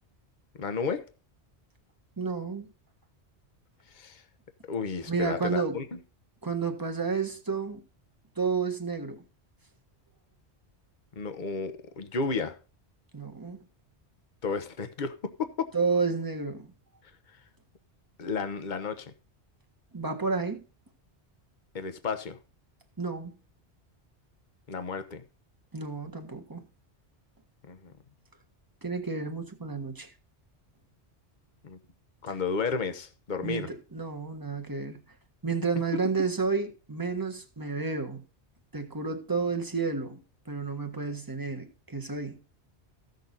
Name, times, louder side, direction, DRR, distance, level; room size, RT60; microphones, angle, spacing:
voice 1, 0.6-1.1 3.9-4.2 4.7-6.0 11.1-12.6 14.4-15.7 17.3-17.4 18.2-19.1 21.7-22.4 24.7-25.2 27.7-27.9 31.6-31.8 32.2-33.7, left 5 dB, 45° left, 1.2 m, -32 dB
voice 2, 2.2-2.7 5.1-5.8 6.4-7.8 8.4-9.2 13.1-13.6 15.7-16.7 19.9-20.6 23.0-23.3 25.7-26.6 28.8-30.1 33.4-35.0 35.4-38.2 38.7-42.4, right 4 dB, 20° right, 1.4 m, -31 dB
15.0 x 6.7 x 4.0 m
omnidirectional pair, 1.1 m